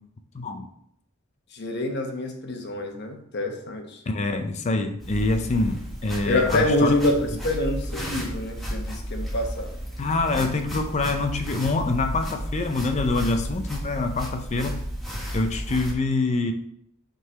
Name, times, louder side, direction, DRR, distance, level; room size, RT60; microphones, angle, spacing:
voice 1, 0.3-0.7 4.1-6.9 10.0-14.8 15.3-16.5, left 3 dB, 30° left, 7 dB, 0.4 m, -25 dB
voice 2, 1.5-4.0 6.3-9.7, left 1 dB, 50° left, 3 dB, 1.0 m, -26 dB
sound 1, 5.0-15.9, equal, ahead, 1.2 m, -33 dB
5.6 x 3.8 x 5.4 m, 0.72 s
head